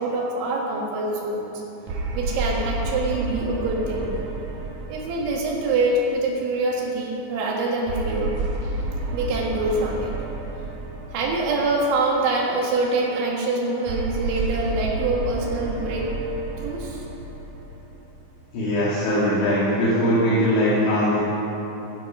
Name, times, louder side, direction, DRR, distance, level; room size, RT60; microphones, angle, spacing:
voice 1, 0.0-1.5 2.1-4.1 4.9-8.4 9.1-10.1 11.1-16.1 16.6-17.0, right 2 dB, 90° right, -2 dB, 4.2 m, -25 dB
sound 1, 1.9-6.4 7.9-12.2 13.9-18.4, right 2 dB, 60° right, 2.5 m, -31 dB
voice 2, 18.5-21.2, equal, 85° left, -9 dB, 4.5 m, -21 dB
14.5 x 10.5 x 5.5 m, 3.0 s
omnidirectional pair, 5.2 m